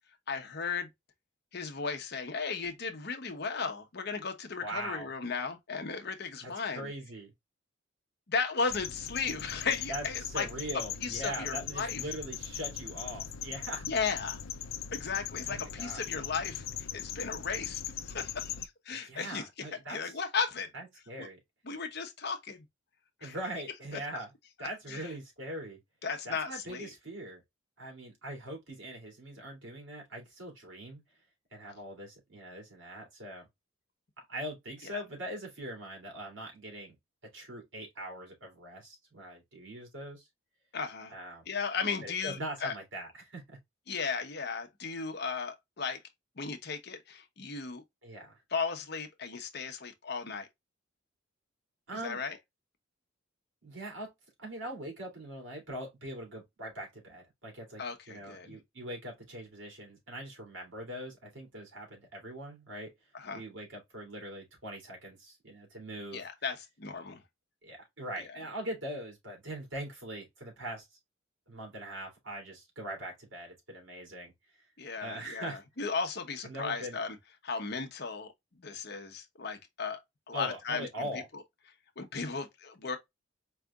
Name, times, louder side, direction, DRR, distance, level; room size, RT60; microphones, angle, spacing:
voice 1, 0.3-0.9 1.5-6.9 8.3-10.5 10.7-12.0 13.9-14.4 14.9-16.7 16.9-19.4 19.9-20.7 21.2-21.3 21.6-22.6 23.2-23.3 24.9-25.1 26.0-26.9 40.7-41.1 41.5-42.7 43.9-46.0 46.4-47.8 48.5-50.5 52.0-52.4 57.8-58.6 63.1-63.4 66.1-67.2 74.8-77.2 77.4-78.3 78.6-80.0 80.3-81.4 82.0-83.0, left 5 dB, 55° left, 0.9 m, -35 dB
voice 2, 4.6-5.1 6.4-7.3 9.9-13.9 15.4-16.0 18.9-20.1 20.7-21.4 23.2-24.3 24.6-25.8 26.2-27.4 27.8-31.0 31.5-33.5 34.2-36.9 37.3-40.3 41.1-41.4 42.0-43.6 48.0-48.4 51.9-52.2 53.6-54.1 54.4-57.8 58.1-62.9 63.3-66.2 67.6-70.9 71.5-74.6 75.0-75.6 76.4-77.0 80.3-81.3, right 1 dB, 65° right, 2.6 m, -42 dB
sound 1, 8.7-18.7, left 9 dB, 85° left, 0.5 m, -40 dB
4.6 x 3.3 x 2.3 m
head